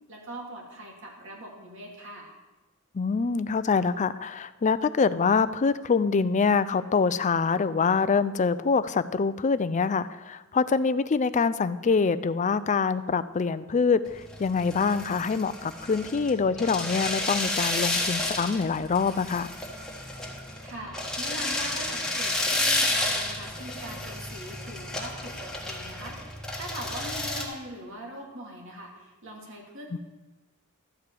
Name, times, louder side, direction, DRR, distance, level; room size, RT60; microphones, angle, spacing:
voice 1, 0.1-2.3 20.6-30.0, right 1 dB, 65° right, 0 dB, 2.3 m, -41 dB
voice 2, 2.9-19.5 29.9-30.0, left 5 dB, 35° left, 13 dB, 0.4 m, -25 dB
sound 1, 14.1-27.5, left 2 dB, 5° left, 1.5 m, -31 dB
12.5 x 4.9 x 8.4 m, 1.1 s
head